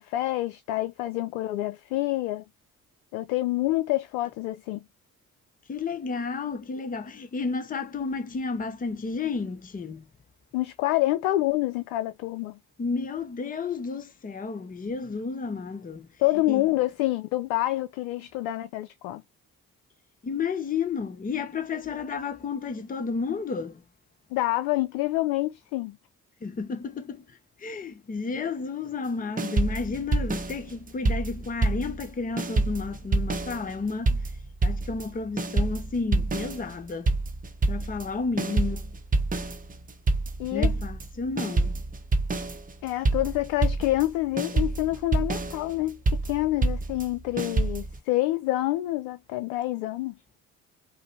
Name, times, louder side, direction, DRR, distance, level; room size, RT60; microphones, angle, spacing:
voice 1, 0.0-2.4 3.1-4.8 10.5-12.6 16.2-19.2 24.3-26.0 40.4-40.8 42.8-50.1, left 17 dB, 65° left, 0.5 m, -27 dB
voice 2, 5.7-10.1 12.8-16.1 16.5-16.7 20.2-23.8 26.4-34.3 34.6-37.1 37.7-38.9 40.5-41.8, left 4 dB, 20° left, 0.7 m, -32 dB
sound 1, 29.4-32.1 32.4-48.0, right 2 dB, 20° right, 0.8 m, -27 dB
5.0 x 2.0 x 2.8 m
figure-of-eight pair, 45°, 43 cm